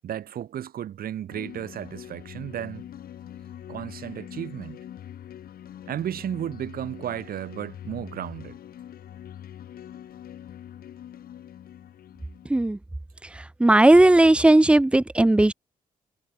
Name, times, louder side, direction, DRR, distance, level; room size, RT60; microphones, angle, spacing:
voice 1, 0.0-2.9 3.7-4.8 5.9-8.6, right 10 dB, 80° right, 3.9 m, -34 dB
sound 1, 1.3-12.5, left 10 dB, 85° left, 7.5 m, -43 dB
voice 2, 13.2-15.5, right 1 dB, 5° right, 0.3 m, -17 dB
wide cardioid pair, 150°, 15 cm